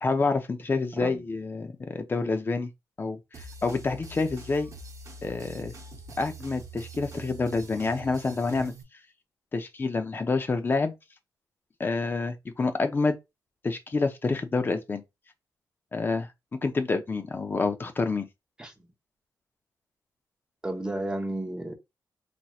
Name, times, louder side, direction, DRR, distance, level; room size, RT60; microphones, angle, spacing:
voice 1, 0.0-2.7 3.0-4.7 5.2-5.7 6.2-8.7 9.5-10.9 11.8-13.2 13.6-15.0 15.9-16.3 16.6-18.3, left 3 dB, 30° left, 0.6 m, -28 dB
sound 1, 3.3-8.8, right 2 dB, 45° right, 1.0 m, -44 dB
voice 2, 20.6-21.7, right 1 dB, 10° right, 0.8 m, -32 dB
4.2 x 3.0 x 2.3 m
wide cardioid pair, 130°, 7 cm